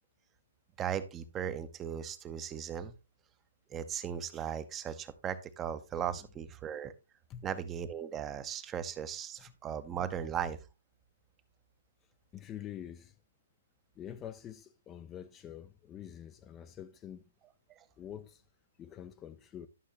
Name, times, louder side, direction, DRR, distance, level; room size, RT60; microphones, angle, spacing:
voice 1, 0.8-2.9 3.7-6.9 7.4-10.6, right 8 dB, 20° right, 0.7 m, -37 dB
voice 2, 12.3-13.1 14.0-17.2 18.0-18.4 18.8-19.7, left 10 dB, 20° left, 0.5 m, -46 dB
11.5 x 6.4 x 3.0 m
figure-of-eight pair, 130°, 0 cm